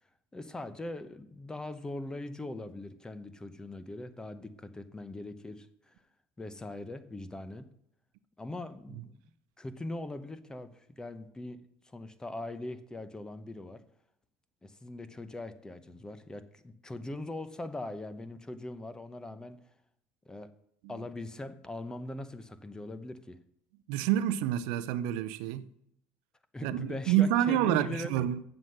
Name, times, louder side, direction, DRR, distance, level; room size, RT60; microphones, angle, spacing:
voice 1, 0.3-5.9 6.4-7.7 8.4-9.2 9.6-13.8 14.6-19.6 20.2-20.5 20.9-23.4 26.5-28.2, left 2 dB, 15° left, 0.9 m, -41 dB
voice 2, 23.9-25.7 26.6-28.4, right 11 dB, 75° right, 0.6 m, -28 dB
7.9 x 7.3 x 6.5 m
supercardioid pair, 100°, 5 cm